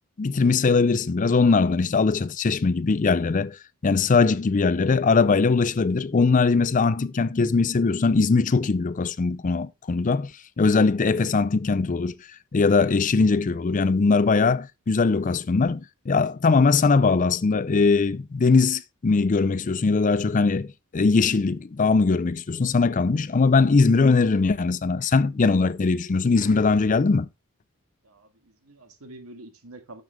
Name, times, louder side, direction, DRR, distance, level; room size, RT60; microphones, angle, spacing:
voice 1, 0.2-3.6 3.8-10.3 10.6-12.2 12.5-27.3, left 4 dB, 35° left, 0.4 m, -21 dB
voice 2, 28.0-30.0, right 2 dB, 85° right, 1.8 m, -46 dB
9.7 x 6.8 x 3.3 m
head